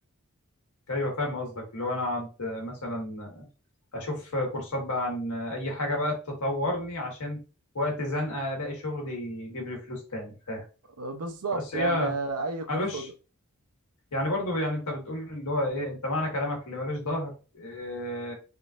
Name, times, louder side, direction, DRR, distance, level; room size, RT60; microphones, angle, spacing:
voice 1, 0.9-3.4 3.9-7.4 7.7-10.6 11.7-12.1 12.7-13.1 14.1-18.3, left 1 dB, 80° left, 1.3 m, -31 dB
voice 2, 11.0-13.0, right 3 dB, 85° right, 0.6 m, -31 dB
3.6 x 2.3 x 2.5 m
head